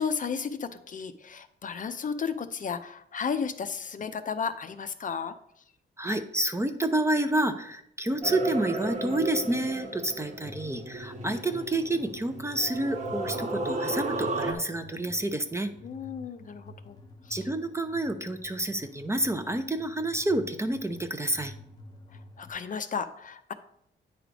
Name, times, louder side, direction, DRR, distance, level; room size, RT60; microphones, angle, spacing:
voice 1, 0.0-5.3 15.8-17.0 17.2-17.5 22.1-23.5, left 6 dB, 45° left, 10 dB, 0.5 m, -33 dB
voice 2, 6.0-15.7 17.3-21.5, right 1 dB, 15° right, 8 dB, 0.5 m, -29 dB
sound 1, 8.2-14.5, right 2 dB, 40° right, 1.1 m, -34 dB
sound 2, 10.4-22.5, left 1 dB, 20° left, 0.9 m, -49 dB
9.2 x 3.3 x 5.0 m, 0.71 s
cardioid pair, 115°, 20 cm